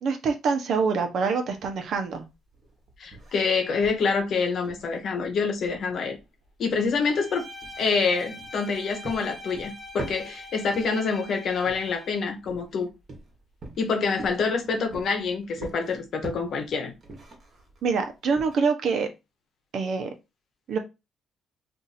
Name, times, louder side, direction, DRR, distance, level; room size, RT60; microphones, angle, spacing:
voice 1, 0.0-2.3 17.8-19.1 19.7-20.1 20.7-20.8, right 5 dB, 65° right, 0.8 m, -25 dB
sound 1, 1.5-18.6, right 2 dB, 50° right, 1.2 m, -45 dB
voice 2, 3.0-6.2 6.6-7.5 7.8-12.9 13.8-16.9, left 4 dB, 65° left, 1.0 m, -26 dB
Bowed string instrument, 7.0-12.3, left 1 dB, 15° left, 1.3 m, -43 dB
2.7 x 2.6 x 4.0 m
cardioid pair, 90°, 0 cm